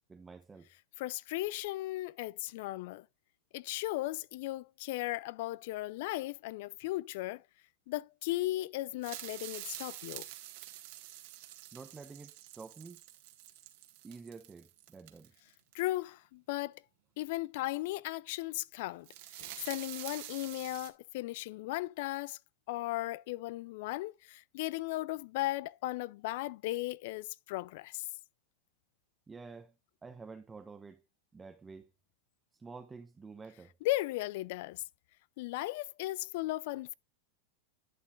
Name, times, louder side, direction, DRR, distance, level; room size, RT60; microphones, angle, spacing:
voice 1, 0.1-0.7 11.7-13.0 14.0-15.3 29.3-29.7 30.0-31.0 31.3-31.9 32.5-33.7, right 4 dB, 15° right, 0.8 m, -49 dB
voice 2, 1.0-3.1 3.5-7.4 7.9-10.3 15.7-16.8 17.2-19.1 19.3-22.4 22.7-28.1 33.8-34.8 35.4-36.9, left 18 dB, 65° left, 0.4 m, -36 dB
sound 1, 9.0-15.7 18.8-20.9, right 14 dB, 65° right, 1.6 m, -47 dB
11.0 x 8.3 x 2.4 m
hypercardioid pair, 120°, 0 cm